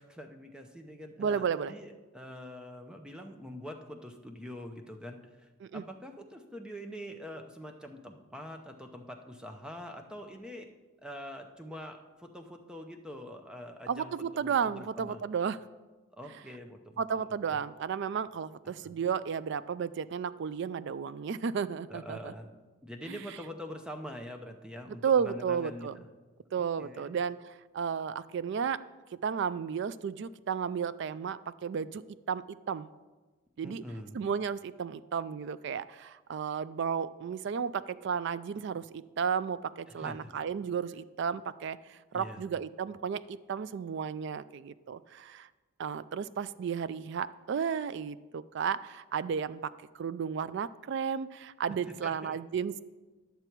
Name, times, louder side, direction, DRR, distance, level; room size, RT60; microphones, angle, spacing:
voice 1, 0.0-10.7 11.0-14.1 14.4-15.2 16.2-17.3 18.6-19.0 21.9-22.5 22.8-26.1 26.6-27.1 33.6-34.3 40.0-40.3 42.1-42.5 52.0-52.4, equal, 5° right, 4 dB, 0.6 m, -45 dB
voice 2, 1.2-1.7 5.6-5.8 13.9-15.6 17.0-22.3 23.1-23.2 25.0-26.0 26.5-28.8 29.2-32.0 32.3-32.9 33.6-33.8 34.1-45.5 45.8-49.7 50.0-52.8, right 7 dB, 55° right, 16 dB, 0.3 m, -33 dB
11.5 x 6.8 x 4.5 m, 1.2 s
head